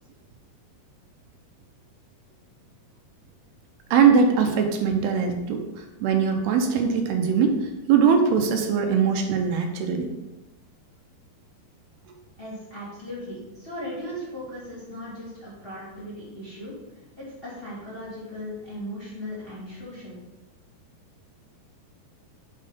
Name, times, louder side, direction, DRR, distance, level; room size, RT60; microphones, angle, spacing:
voice 1, 3.9-5.6 6.0-10.1, right 6 dB, 80° right, 4 dB, 2.8 m, -21 dB
voice 2, 12.4-16.7 17.2-20.2, equal, 15° left, -8 dB, 2.3 m, -37 dB
6.4 x 5.5 x 5.4 m, 1.0 s
omnidirectional pair, 4.5 m